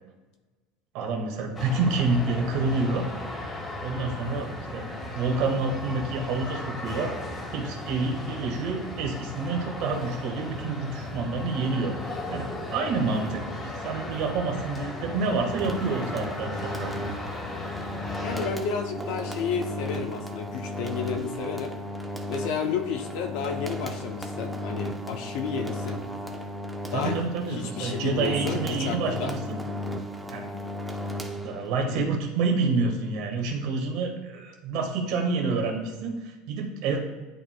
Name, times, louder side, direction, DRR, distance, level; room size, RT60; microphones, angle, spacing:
voice 1, 0.9-3.0 3.8-4.9 5.1-7.1 7.5-16.9 26.9-29.6 30.3-30.5 31.4-37.0, right 3 dB, 65° right, 1 dB, 1.5 m, -28 dB
sound 1, 1.5-18.5, left 2 dB, 25° left, 1.6 m, -36 dB
sound 2, 15.4-31.9, left 1 dB, 10° right, 0.8 m, -35 dB
voice 2, 18.2-21.8 22.3-26.0 26.9-27.2 27.5-29.3 31.9-32.2, left 6 dB, 70° left, 5 dB, 0.7 m, -32 dB
11.0 x 4.2 x 2.3 m, 1.2 s
supercardioid pair, 110°, 0 cm